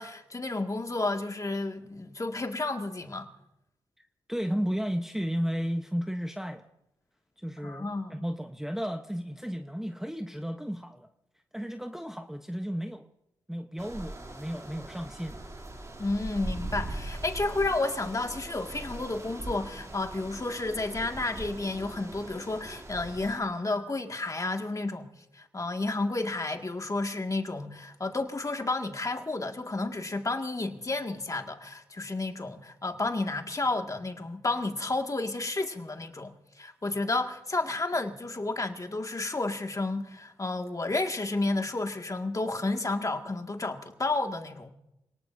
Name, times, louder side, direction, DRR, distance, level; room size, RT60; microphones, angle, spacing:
voice 1, 0.0-3.3 7.6-8.1 16.0-36.3 36.6-44.7, left 2 dB, 30° left, 2.0 m, -31 dB
voice 2, 4.3-6.6 7.4-11.1 11.5-13.1 13.5-15.4, equal, 5° right, 1.0 m, -33 dB
sound 1, 13.8-23.4, right 1 dB, 30° right, 2.9 m, -40 dB
27.5 x 18.5 x 2.7 m
supercardioid pair, 45°, 10 cm